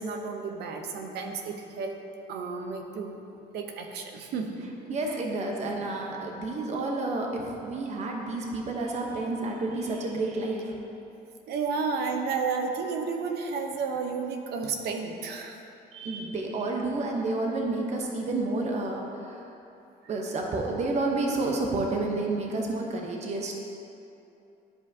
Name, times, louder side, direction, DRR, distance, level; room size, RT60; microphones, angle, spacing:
voice 1, 0.0-2.0 2.3-3.2 3.5-5.2 11.5-15.6, right 4 dB, 75° right, 4 dB, 0.8 m, -32 dB
voice 2, 4.9-10.7 15.9-19.4 20.1-23.5, right 2 dB, 40° right, 0 dB, 0.9 m, -30 dB
12.0 x 5.1 x 2.8 m, 2.9 s
cardioid pair, 110°, 17 cm